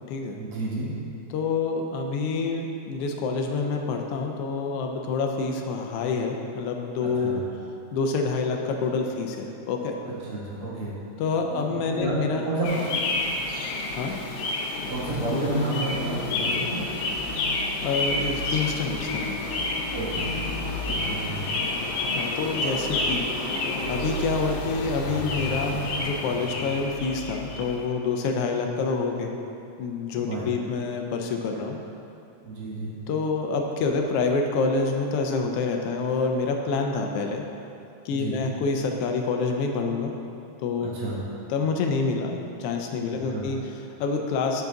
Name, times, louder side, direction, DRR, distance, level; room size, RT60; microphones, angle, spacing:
voice 1, 0.4-0.9 7.0-7.4 10.3-10.9 11.5-11.6 11.9-13.0 14.9-16.8 19.9-20.5 20.8-21.7 30.1-30.4 31.5-31.6 32.4-32.9 38.1-38.4 40.8-41.2 43.3-43.4, right 2 dB, 55° right, -6 dB, 2.0 m, -30 dB
voice 2, 1.3-7.4 7.9-10.0 11.2-12.4 14.0-14.1 17.8-19.4 22.2-23.3 23.9-29.4 29.8-31.8 33.1-37.4 38.0-40.1 40.6-40.9 41.5-44.6, left 4 dB, 90° left, 2 dB, 1.3 m, -27 dB
sound 1, 12.6-27.8, left 2 dB, 70° left, 1.5 m, -29 dB
8.1 x 6.0 x 3.8 m, 2.7 s
omnidirectional pair, 3.4 m